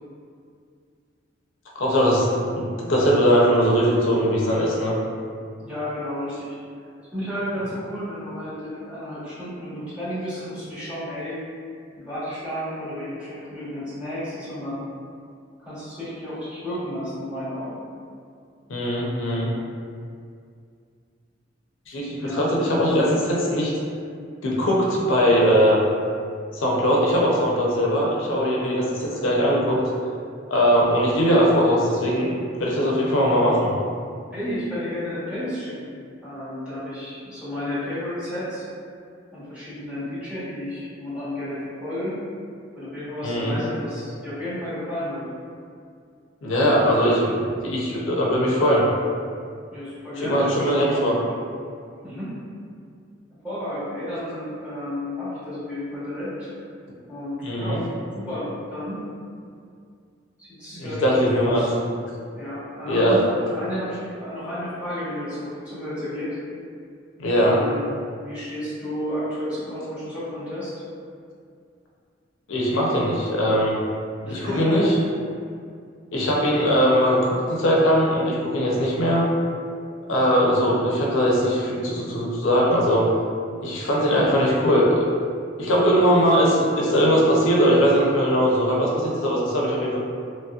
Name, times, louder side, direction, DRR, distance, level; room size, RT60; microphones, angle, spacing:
voice 1, 1.8-5.0 18.7-19.5 21.9-23.7 24.4-25.8 26.5-29.8 30.5-33.7 43.2-43.6 46.4-48.9 50.2-51.2 57.4-57.8 60.7-61.6 62.9-63.2 67.2-67.6 72.5-73.8 74.3-75.0 76.1-79.3 80.1-83.1 83.6-84.9 85.6-90.0, equal, 85° left, -4 dB, 0.5 m, -20 dB
voice 2, 5.6-6.6 7.1-11.4 12.0-14.8 15.6-17.8 22.2-22.4 34.3-35.9 36.2-38.6 39.3-42.2 42.7-45.3 49.7-50.5 52.0-52.4 53.4-56.5 57.1-57.8 58.1-59.0 60.4-61.8 62.3-66.4 67.4-67.9 68.1-70.7 74.2-74.9, left 1 dB, 5° right, -13 dB, 1.1 m, -32 dB
3.0 x 2.7 x 2.3 m, 2.3 s
head